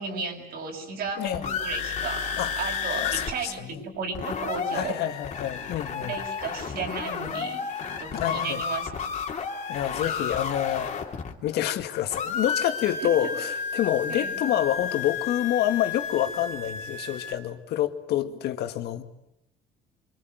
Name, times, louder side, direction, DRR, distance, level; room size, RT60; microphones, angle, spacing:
voice 1, 0.0-2.3 2.6-5.0 6.0-8.9 14.1-14.3, right 4 dB, 70° right, 7.3 m, -34 dB
sound 1, 1.1-3.3 3.6-3.7 3.9-11.8 12.1-17.3, left 6 dB, 45° left, 3.2 m, -32 dB
voice 2, 1.2-1.5 2.4-2.5 3.0-3.8 4.7-6.2 8.2-8.6 9.7-10.9 11.4-19.0, left 12 dB, 75° left, 2.0 m, -27 dB
25.0 x 25.0 x 9.3 m
cardioid pair, 110°, 17 cm